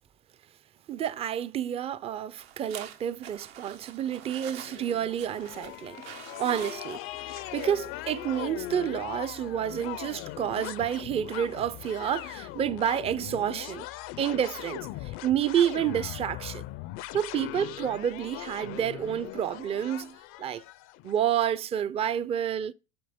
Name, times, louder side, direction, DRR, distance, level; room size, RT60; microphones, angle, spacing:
voice 1, 0.9-6.0 6.4-13.9 14.2-16.6 17.1-20.6 21.0-22.7, right 9 dB, 20° right, 0.4 m, -29 dB
sound 1, 2.4-7.8, right 9 dB, 85° right, 1.4 m, -46 dB
sound 2, 4.1-21.2, left 17 dB, 45° left, 0.5 m, -40 dB
8.8 x 5.3 x 3.6 m
supercardioid pair, 110°, 31 cm